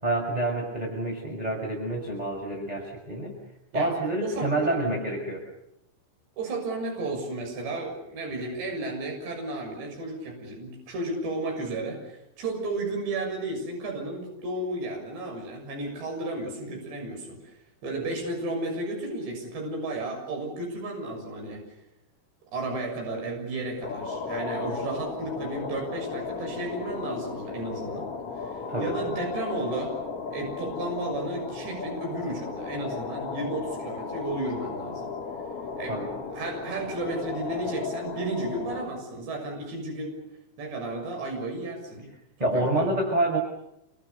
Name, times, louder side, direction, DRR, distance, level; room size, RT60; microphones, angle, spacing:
voice 1, 0.0-3.4 3.7-5.4 28.7-28.9 35.9-36.1 42.4-43.4, right 1 dB, 10° right, 1 dB, 5.3 m, -27 dB
voice 2, 4.2-4.7 6.4-17.5 17.8-21.6 22.5-29.9 30.3-35.1 35.8-36.0 36.3-40.2 40.6-42.1 42.4-42.9, right 2 dB, 70° right, 1 dB, 9.0 m, -33 dB
sound 1, 23.8-38.9, left 4 dB, 35° left, 3.9 m, -35 dB
28.5 x 26.0 x 6.8 m, 0.82 s
omnidirectional pair, 5.1 m